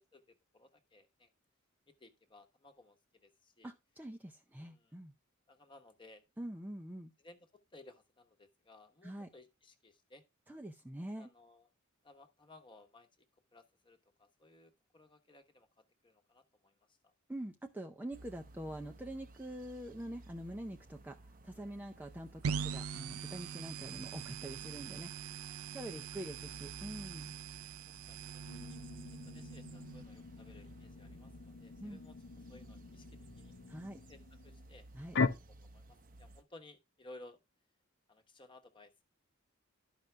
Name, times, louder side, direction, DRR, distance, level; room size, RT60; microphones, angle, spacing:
voice 1, 0.1-1.3 1.9-3.7 4.6-5.0 5.5-6.2 7.2-10.2 11.2-11.7 12.0-13.1 13.5-17.1 25.4-26.0 27.9-28.8 29.1-33.5 34.1-34.8 35.6-37.4 38.1-39.0, left 2 dB, 25° left, 1.1 m, -59 dB
voice 2, 3.6-5.1 6.4-7.1 9.0-9.3 10.5-11.3 17.3-21.2 21.4-25.1 25.7-27.4 31.8-32.0 33.7-34.0 34.9-35.2, right 1 dB, 10° right, 0.5 m, -45 dB
sound 1, 18.1-36.4, right 2 dB, 40° right, 0.7 m, -57 dB
sound 2, 22.4-30.0, right 6 dB, 85° right, 0.5 m, -43 dB
sound 3, 28.5-35.3, left 4 dB, 60° left, 0.7 m, -41 dB
12.0 x 5.3 x 3.4 m
head